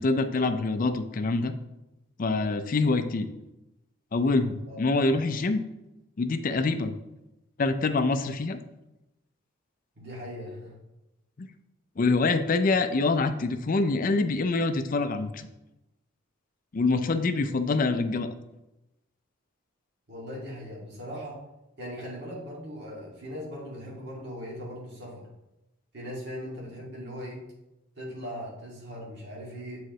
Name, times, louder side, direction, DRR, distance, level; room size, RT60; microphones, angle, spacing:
voice 1, 0.0-1.5 2.2-3.3 4.1-5.6 6.2-6.9 7.6-8.6 11.4-11.5 12.0-15.5 16.7-18.3, left 3 dB, 40° left, 9 dB, 0.4 m, -25 dB
voice 2, 10.0-10.8 20.1-21.4 21.8-25.3 25.9-27.4 28.0-29.8, equal, 55° right, -4 dB, 2.1 m, -39 dB
7.4 x 4.7 x 3.0 m, 0.94 s
head